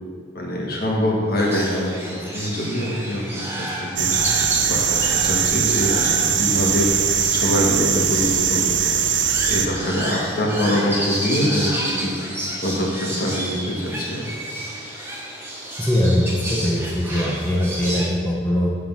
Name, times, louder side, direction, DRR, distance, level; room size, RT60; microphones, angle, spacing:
voice 1, 0.3-4.1 4.7-6.9 7.3-8.8 9.5-12.1 12.6-14.3, equal, 50° left, -2 dB, 1.4 m, -24 dB
sound 1, 1.4-18.1, right 1 dB, 15° right, 1.1 m, -31 dB
sound 2, 4.0-9.7, right 8 dB, 75° right, 0.6 m, -21 dB
voice 2, 15.8-18.7, equal, 10° left, -4 dB, 1.0 m, -21 dB
7.8 x 5.5 x 6.0 m, 2.1 s
head